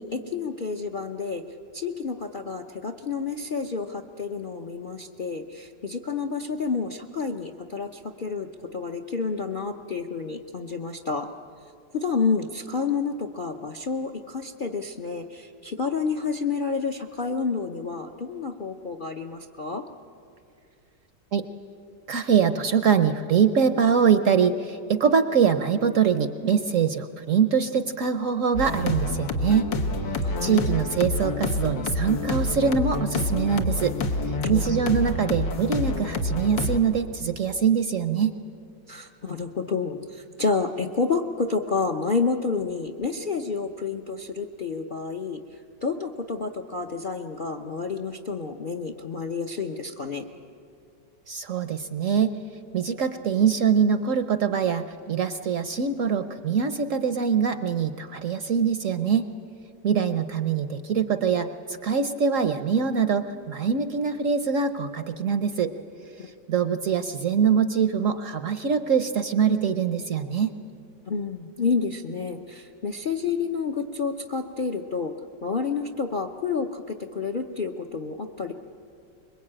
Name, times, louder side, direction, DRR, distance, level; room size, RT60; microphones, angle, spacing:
voice 1, 0.0-1.4 1.7-11.3 11.9-19.8 30.2-30.7 34.4-34.6 38.9-45.4 45.8-50.3 66.2-66.3 71.1-75.1 75.4-78.5, left 4 dB, 45° left, 5 dB, 0.6 m, -29 dB
voice 2, 22.1-29.6 30.4-34.0 34.5-38.3 51.3-52.4 52.7-59.3 59.8-65.7 66.5-70.5, right 6 dB, 60° right, 10 dB, 0.9 m, -23 dB
sound 1, 28.5-36.8, left 2 dB, 85° left, 2.1 m, -27 dB
24.5 x 22.0 x 8.8 m, 2.5 s
omnidirectional pair, 1.9 m